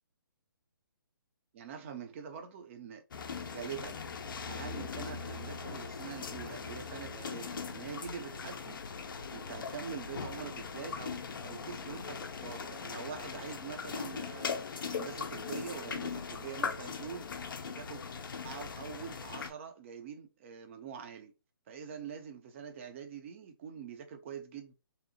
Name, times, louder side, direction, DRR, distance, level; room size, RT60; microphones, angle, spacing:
voice 1, 1.5-3.0 3.4-4.0 4.5-8.8 9.3-14.6 14.9-17.3 17.6-18.0 18.4-21.3 21.7-24.7, right 7 dB, 35° right, 0.5 m, -44 dB
sound 1, 3.1-19.5, left 5 dB, 60° left, 0.4 m, -40 dB
2.8 x 2.0 x 2.6 m
figure-of-eight pair, 140°, 12 cm